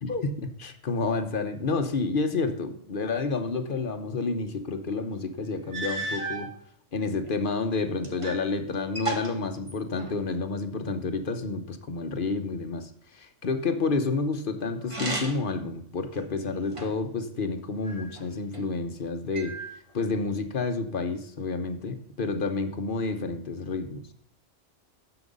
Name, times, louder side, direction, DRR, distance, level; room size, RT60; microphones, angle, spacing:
voice 1, 0.0-6.5 6.9-19.6 19.9-24.1, left 3 dB, 45° left, 8 dB, 1.0 m, -30 dB
sound 1, 5.1-5.2 5.7-6.5 7.2-8.5 8.7-10.3 14.8-15.6 16.1-17.1 17.8-18.6 19.3-20.1, right 2 dB, 25° right, 1.7 m, -35 dB
9.9 x 7.1 x 5.3 m, 0.68 s
omnidirectional pair, 1.3 m